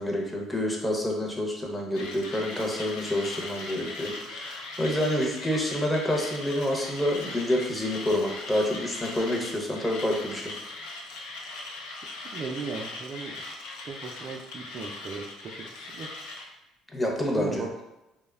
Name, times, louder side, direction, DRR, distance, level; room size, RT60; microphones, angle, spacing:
voice 1, 0.0-10.4 16.9-17.6, left 1 dB, 10° left, -1 dB, 0.6 m, -28 dB
Mechanisms, 2.0-16.5, left 2 dB, 85° left, 0.4 m, -39 dB
voice 2, 12.3-13.6 13.8-16.1 17.3-17.7, right 4 dB, 50° right, 2 dB, 0.3 m, -37 dB
3.0 x 2.0 x 2.3 m, 0.95 s
supercardioid pair, 80°, 0 cm